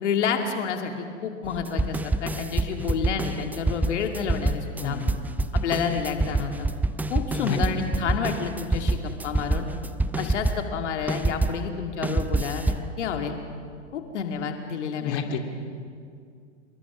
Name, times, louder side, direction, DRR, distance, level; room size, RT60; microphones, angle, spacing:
voice 1, 0.0-5.0 5.5-6.7 7.1-9.7 10.2-13.4 13.9-15.2, left 6 dB, 75° left, 4 dB, 2.4 m, -29 dB
sound 1, 1.4-11.6 12.0-12.9, right 2 dB, 5° right, 0.6 m, -26 dB
voice 2, 4.8-5.2 7.4-7.6 15.0-15.4, left 7 dB, 45° left, 4 dB, 2.9 m, -30 dB
28.0 x 23.0 x 6.1 m, 2.2 s
hypercardioid pair, 115°, 36 cm